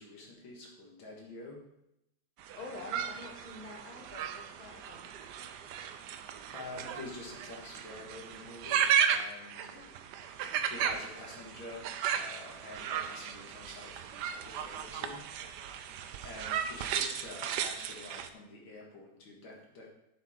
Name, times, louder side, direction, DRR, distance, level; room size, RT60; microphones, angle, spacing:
voice 1, 0.0-1.6 5.4-5.5 6.5-9.7 10.0-10.1 10.6-15.3 16.2-19.9, left 2 dB, 80° left, -2 dB, 2.7 m, -47 dB
sound 1, 2.4-18.3, right 8 dB, 70° right, 1.1 m, -35 dB
voice 2, 2.5-5.1 9.7-9.9, left 3 dB, 25° left, 1 dB, 1.2 m, -47 dB
8.8 x 7.5 x 3.9 m, 0.84 s
omnidirectional pair, 2.1 m